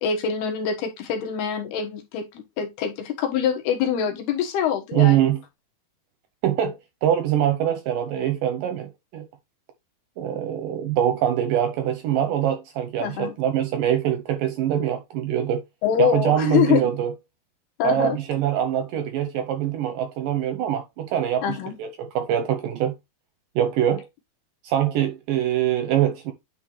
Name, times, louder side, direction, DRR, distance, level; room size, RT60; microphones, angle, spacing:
voice 1, 0.0-2.3 2.6-5.3 13.0-13.3 15.8-16.9 17.8-18.2 21.4-21.7, left 8 dB, 75° left, 3.4 m, -24 dB
voice 2, 4.9-5.4 6.4-9.3 10.2-15.6 16.0-17.1 17.8-22.9 23.6-24.1 24.6-26.3, right 10 dB, 75° right, 2.1 m, -23 dB
9.6 x 3.9 x 3.1 m
omnidirectional pair, 4.6 m